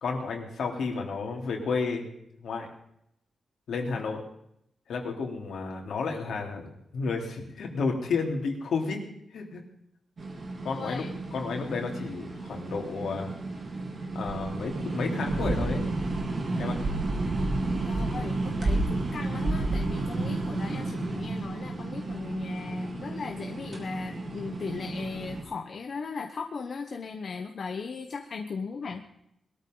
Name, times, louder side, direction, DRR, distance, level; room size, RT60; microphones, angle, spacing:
voice 1, 0.0-2.1 2.4-2.7 3.7-4.2 4.9-9.0 9.3-9.6 10.6-11.1 11.3-13.3 14.1-15.8 16.6-16.8, left 4 dB, 75° left, 1 dB, 3.6 m, -31 dB
sound 1, 10.2-25.4, right 2 dB, 40° right, 3.5 m, -31 dB
voice 2, 10.7-11.1 17.8-29.0, left 5 dB, 45° left, 4 dB, 1.1 m, -38 dB
21.5 x 13.5 x 4.0 m, 0.76 s
wide cardioid pair, 170°, 0 cm